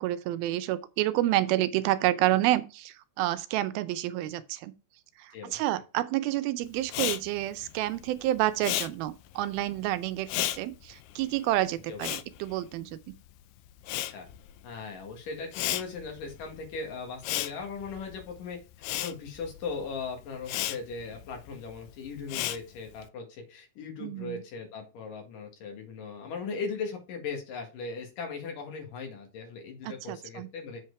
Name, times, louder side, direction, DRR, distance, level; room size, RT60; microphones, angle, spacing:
voice 1, 0.0-4.7 5.2-13.0 24.0-24.4 29.8-30.5, right 15 dB, 85° right, 2.4 m, -29 dB
Respiratory sounds, 6.9-13.3 13.6-23.1, left 14 dB, 80° left, 1.9 m, -35 dB
voice 2, 13.9-14.3 14.6-18.6 18.9-30.8, left 4 dB, 65° left, 3.4 m, -38 dB
7.9 x 4.4 x 4.7 m
omnidirectional pair, 4.3 m